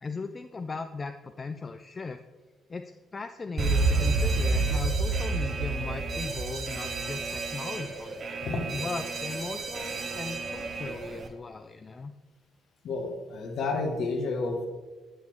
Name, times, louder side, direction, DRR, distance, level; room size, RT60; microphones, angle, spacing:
voice 1, 0.0-2.2 2.7-2.8 3.1-8.2 8.7-12.1, left 4 dB, 35° left, 8 dB, 0.3 m, -37 dB
Alarm, 3.6-11.3, right 3 dB, 45° right, 0.8 m, -29 dB
voice 2, 12.8-14.7, left 3 dB, 55° left, 5 dB, 1.0 m, -30 dB
8.3 x 6.1 x 3.1 m, 1.3 s
figure-of-eight pair, 40°, 0 cm